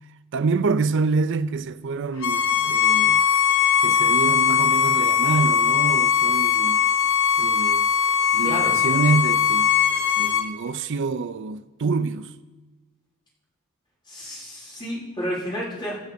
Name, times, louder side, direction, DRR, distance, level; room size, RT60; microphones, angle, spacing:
voice 1, 0.3-3.2 3.8-6.8 7.4-7.9 8.3-9.7 10.2-12.3, right 4 dB, 60° right, 0.5 m, -26 dB
Bowed string instrument, 2.2-10.5, left 8 dB, 80° left, 1.2 m, -20 dB
voice 2, 8.4-8.7 14.1-16.0, equal, 20° left, 4.1 m, -31 dB
16.0 x 9.4 x 5.1 m
head